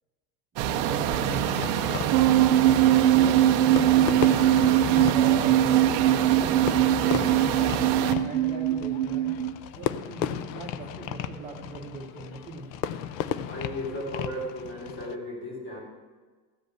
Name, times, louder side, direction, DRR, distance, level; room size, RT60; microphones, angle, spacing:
voice 1, 0.5-1.8 3.0-4.4 4.8-5.8 6.2-9.3 9.7-12.7, right 3 dB, 15° right, -3 dB, 0.8 m, -40 dB
sound 1, 0.6-8.1, right 10 dB, 35° right, 0.4 m, -27 dB
Fireworks, 1.3-15.2, left 10 dB, 85° left, 0.8 m, -35 dB
sound 2, 2.1-9.5, right 12 dB, 85° right, 0.7 m, -21 dB
voice 2, 2.5-3.0 13.5-15.8, left 1 dB, 25° left, -1 dB, 2.9 m, -36 dB
14.5 x 5.3 x 7.7 m, 1.4 s
cardioid pair, 175°, 48 cm